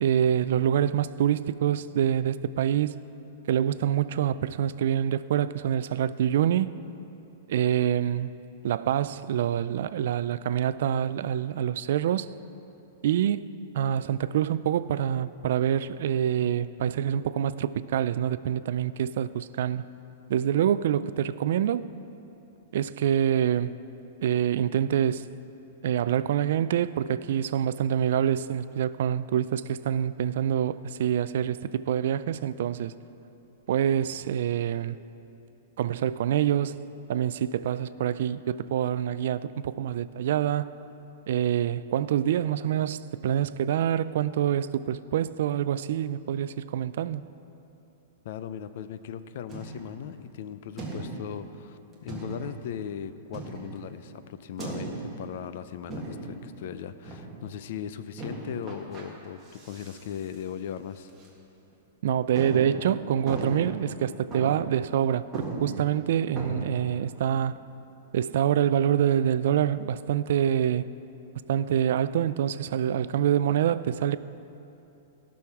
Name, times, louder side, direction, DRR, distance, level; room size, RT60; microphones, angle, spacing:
voice 1, 0.0-3.0 3.5-6.7 7.5-8.3 8.6-12.3 13.0-19.9 20.3-21.9 22.7-23.8 24.2-25.3 25.8-32.9 33.7-35.0 35.8-36.8 37.1-40.7 41.3-47.3 62.0-67.6 68.1-70.9 71.5-74.2, right 10 dB, 60° right, 15 dB, 0.3 m, -26 dB
voice 2, 48.2-61.1, left 9 dB, 50° left, 12 dB, 0.5 m, -38 dB
sound 1, 49.5-50.0 50.8-51.4 52.1-52.6 53.3-53.9 54.6-55.2 55.9-56.5 57.0-57.4 58.2-59.1 59.5-60.0 60.3-60.4 61.1-61.3 61.7-61.8 62.3-63.9 64.3-64.8 65.0-65.1 65.3-66.7, right 2 dB, 10° right, 1.7 m, -37 dB
15.5 x 6.3 x 5.8 m, 2.9 s
supercardioid pair, 165°, 0 cm